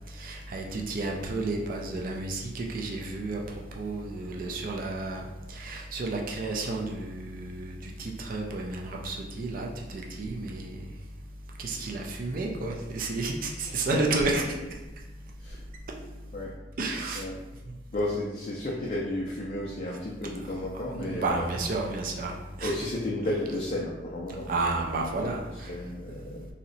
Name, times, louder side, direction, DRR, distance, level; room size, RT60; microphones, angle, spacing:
voice 1, 0.2-3.4 3.8-5.2 5.5-10.8 11.6-14.4 16.8-17.2 20.6-20.7 20.9-22.7 24.5-25.7, right 3 dB, 50° right, 0 dB, 0.4 m, -31 dB
voice 2, 17.9-21.5 22.6-25.1 25.4-26.5, left 1 dB, 40° left, -4 dB, 0.4 m, -33 dB
2.7 x 2.1 x 3.9 m, 1.1 s
head